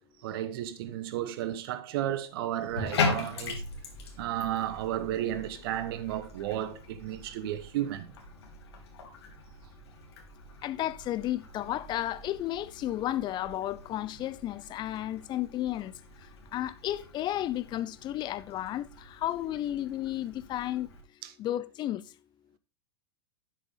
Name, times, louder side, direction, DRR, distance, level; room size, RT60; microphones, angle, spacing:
voice 1, 0.2-3.6 4.2-8.1 21.2-21.3, right 12 dB, 60° right, 1.3 m, -33 dB
Bathtub (filling or washing), 2.7-21.0, left 4 dB, 75° left, 3.1 m, -40 dB
voice 2, 10.6-15.9 16.5-20.9 21.4-22.0, left 13 dB, 35° left, 0.7 m, -33 dB
12.0 x 6.7 x 3.8 m
hypercardioid pair, 110°, 14 cm